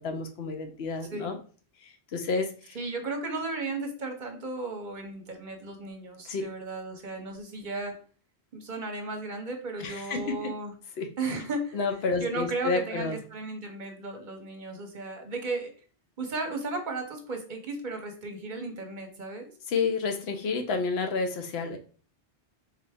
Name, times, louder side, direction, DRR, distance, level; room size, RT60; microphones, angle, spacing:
voice 1, 0.0-1.4 1.8-2.8 6.3-6.4 9.8-10.5 11.0-11.1 11.7-13.2 19.7-21.8, left 4 dB, 70° left, 6 dB, 0.9 m, -30 dB
voice 2, 2.7-8.0 8.5-10.7 11.2-11.8 12.2-15.7 16.2-19.5, right 3 dB, 50° right, 4 dB, 0.8 m, -35 dB
3.8 x 3.2 x 3.4 m, 0.41 s
omnidirectional pair, 1.1 m